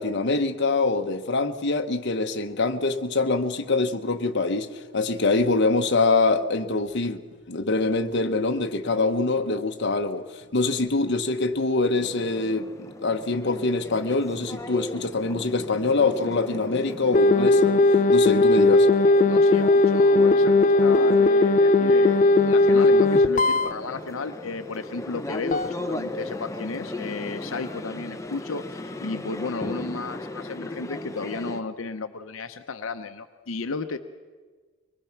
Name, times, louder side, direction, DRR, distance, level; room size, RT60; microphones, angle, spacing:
voice 1, 0.0-7.2 7.5-10.3 10.5-12.7 13.0-17.8 18.1-18.9, left 3 dB, 60° left, 1.1 m, -24 dB
sound 1, 11.9-31.6, left 2 dB, 15° left, 1.0 m, -36 dB
sound 2, 17.1-23.7 25.5-25.7, left 2 dB, 40° left, 0.5 m, -18 dB
voice 2, 19.2-34.0, left 3 dB, 85° left, 0.8 m, -34 dB
24.0 x 21.0 x 5.9 m
head